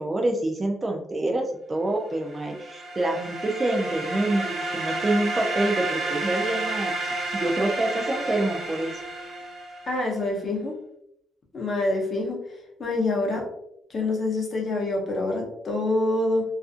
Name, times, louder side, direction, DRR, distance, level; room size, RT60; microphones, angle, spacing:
voice 1, 0.0-8.9, right 2 dB, 20° right, 2 dB, 0.3 m, -27 dB
sound 1, 2.3-10.0, right 2 dB, 50° right, 0.8 m, -31 dB
voice 2, 9.8-10.7 11.5-12.4 12.8-13.4 13.9-16.4, left 2 dB, 35° left, 0 dB, 0.7 m, -26 dB
2.4 x 2.4 x 2.4 m, 0.76 s
cardioid pair, 150°, 0 cm